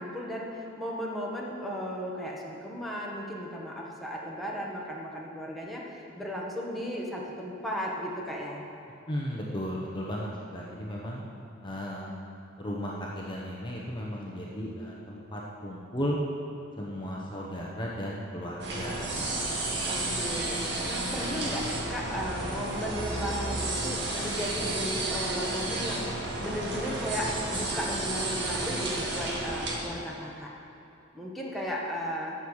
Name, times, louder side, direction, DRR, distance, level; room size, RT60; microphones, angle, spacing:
voice 1, 0.0-8.6 19.9-26.1 26.4-30.5 31.1-32.3, equal, ahead, -4 dB, 1.4 m, -35 dB
voice 2, 9.1-11.2 11.6-12.1 12.6-16.2 16.8-19.0 19.4-19.5, equal, 25° left, -3 dB, 1.0 m, -35 dB
sound 1, 18.6-29.8, right 2 dB, 60° right, 2.0 m, -32 dB
12.5 x 7.2 x 6.4 m, 2.7 s
head